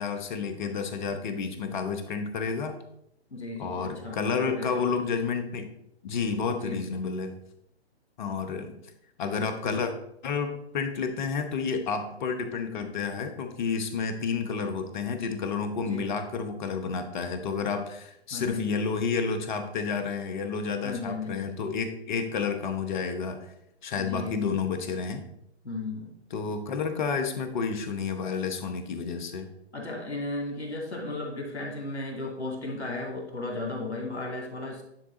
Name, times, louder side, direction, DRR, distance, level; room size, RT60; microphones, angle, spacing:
voice 1, 0.0-2.7 3.6-5.7 6.0-7.3 8.2-8.8 9.2-9.9 10.2-23.4 23.8-25.2 26.3-29.5, left 5 dB, 45° left, 7 dB, 1.0 m, -30 dB
voice 2, 3.3-4.9 6.5-6.8 15.8-16.1 18.3-18.7 20.8-21.4 23.9-24.5 25.6-26.1 29.7-34.8, left 2 dB, 85° left, 2 dB, 2.1 m, -35 dB
10.0 x 3.6 x 3.8 m, 0.78 s
figure-of-eight pair, 130°, 33 cm